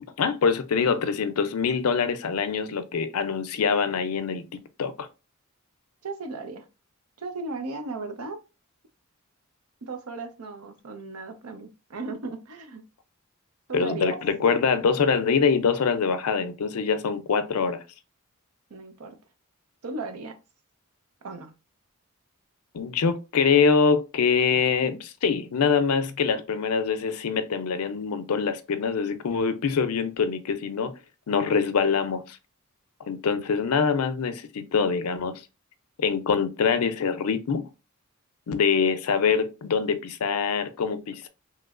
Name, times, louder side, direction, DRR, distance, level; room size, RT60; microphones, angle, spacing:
voice 1, 0.2-4.4 4.8-5.1 13.7-17.8 22.7-30.9 31.3-32.4 33.0-35.3 36.0-37.7 38.5-41.3, left 5 dB, 90° left, 0.5 m, -24 dB
voice 2, 6.0-6.6 7.2-8.4 9.8-12.8 13.7-14.2 18.7-19.2 19.8-20.4 21.2-21.5, right 3 dB, 90° right, 0.7 m, -36 dB
3.1 x 3.0 x 2.4 m
head